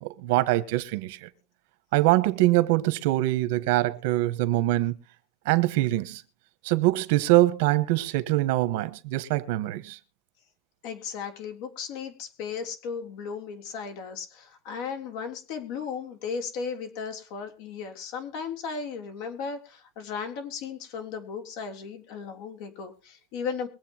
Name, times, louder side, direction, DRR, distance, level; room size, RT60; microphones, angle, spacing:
voice 1, 0.0-1.3 1.9-4.9 5.4-6.2 6.6-10.0, right 17 dB, 75° right, 1.3 m, -24 dB
voice 2, 10.8-23.7, left 6 dB, 60° left, 3.4 m, -36 dB
23.0 x 8.0 x 3.0 m
cardioid pair, 170°, 0 cm